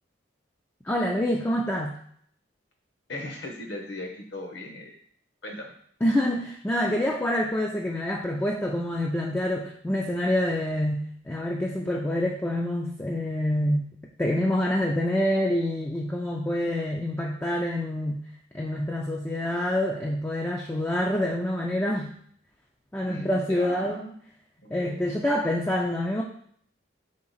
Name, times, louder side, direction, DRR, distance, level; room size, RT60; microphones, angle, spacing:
voice 1, 0.8-1.9 6.0-13.9 14.2-18.2 18.5-22.2 22.9-24.0 24.7-26.2, left 1 dB, 10° left, -2 dB, 0.3 m, -26 dB
voice 2, 3.1-4.9 5.4-5.7 23.1-24.1 24.6-25.0, left 1 dB, 60° left, 1 dB, 1.0 m, -37 dB
3.8 x 3.4 x 3.9 m, 0.63 s
head